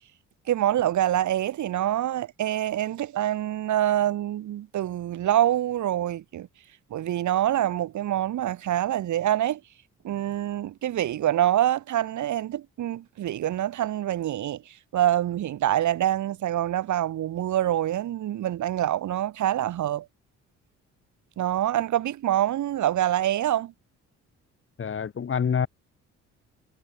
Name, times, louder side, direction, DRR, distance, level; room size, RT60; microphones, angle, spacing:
voice 1, 0.5-6.5 6.9-9.6 10.0-20.1 21.4-23.7, right 12 dB, 70° right, 2.3 m, -25 dB
voice 2, 24.8-25.7, left 7 dB, 45° left, 2.5 m, -26 dB
cardioid pair, 90°, 30 cm